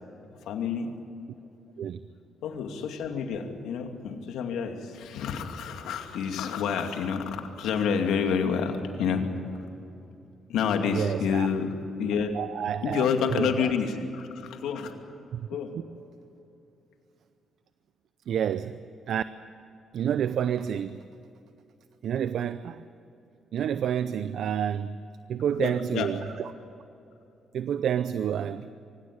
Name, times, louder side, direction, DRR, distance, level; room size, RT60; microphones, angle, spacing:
voice 1, 0.4-0.9 2.4-9.3 10.5-11.7 12.0-12.4 12.8-15.0 15.5-15.8 25.6-26.1, left 6 dB, 85° left, 4 dB, 2.4 m, -28 dB
voice 2, 10.9-11.5 12.3-13.7 15.3-15.4 15.9-16.0 18.3-19.2 19.9-21.0 22.0-22.8 23.5-26.5 27.5-28.7, right 9 dB, 70° right, 13 dB, 0.6 m, -29 dB
24.0 x 17.0 x 9.5 m, 2.8 s
cardioid pair, 90°, 0 cm